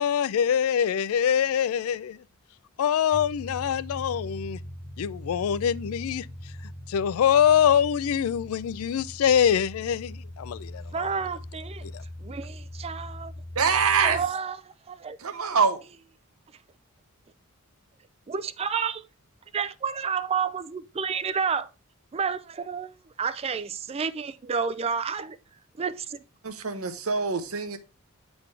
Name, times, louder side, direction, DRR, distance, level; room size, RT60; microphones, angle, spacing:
voice 1, 0.0-2.2 2.8-4.6 5.0-6.3 6.6-11.1 11.9-12.0, left 8 dB, 70° left, 0.3 m, -24 dB
sound 1, 3.1-14.3, left 1 dB, 25° left, 0.6 m, -41 dB
voice 2, 10.9-11.8 12.2-13.3 14.0-15.2 18.3-19.0 19.5-21.7 22.1-25.4 25.8-26.2, right 6 dB, 25° right, 0.3 m, -30 dB
voice 3, 13.6-14.2 15.2-15.8 26.4-27.8, right 5 dB, 70° right, 0.9 m, -24 dB
8.2 x 4.0 x 3.3 m
head